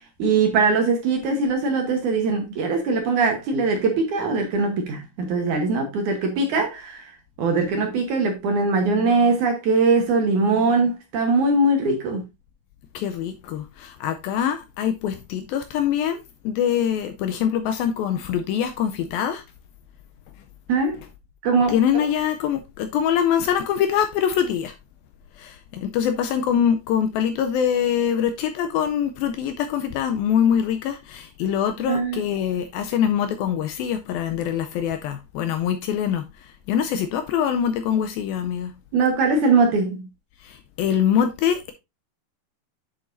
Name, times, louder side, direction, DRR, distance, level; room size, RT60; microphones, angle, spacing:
voice 1, 0.2-7.0 7.4-12.2 20.7-21.0 21.4-22.0 31.9-32.2 38.9-40.0, right 3 dB, 65° right, 2.1 m, -21 dB
voice 2, 12.9-16.2 16.4-19.4 21.7-24.7 25.4-36.2 36.7-38.7 40.4-41.7, left 9 dB, 80° left, 2.2 m, -24 dB
8.6 x 7.1 x 2.6 m
omnidirectional pair, 4.7 m